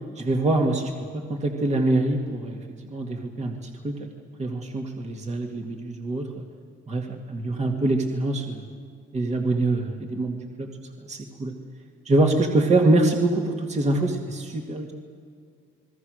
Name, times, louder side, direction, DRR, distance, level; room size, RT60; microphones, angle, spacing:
voice 1, 0.2-2.6 2.9-4.1 4.4-6.4 6.9-8.6 9.1-10.7 11.0-11.5 12.1-14.9, right 2 dB, 35° right, 2 dB, 2.2 m, -24 dB
29.0 x 21.5 x 6.5 m, 2.3 s
cardioid pair, 90°, 20 cm